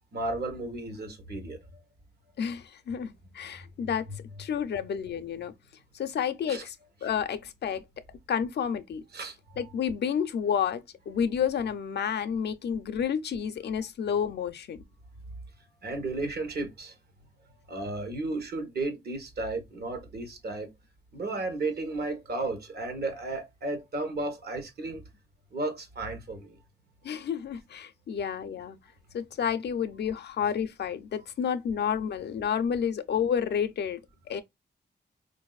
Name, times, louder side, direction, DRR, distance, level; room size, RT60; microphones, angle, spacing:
voice 1, 0.1-1.9 4.1-4.2 5.0-5.1 6.5-6.6 9.1-9.7 15.8-17.0 17.7-20.7 21.1-25.0 25.5-26.5, right 2 dB, 65° right, 1.0 m, -34 dB
voice 2, 2.4-4.1 4.4-5.5 5.9-6.7 7.0-7.8 8.3-9.0 9.6-14.8 27.0-28.8 29.1-34.0 34.3-34.4, left 7 dB, 70° left, 0.5 m, -30 dB
4.0 x 2.5 x 2.3 m
cardioid pair, 85°, 18 cm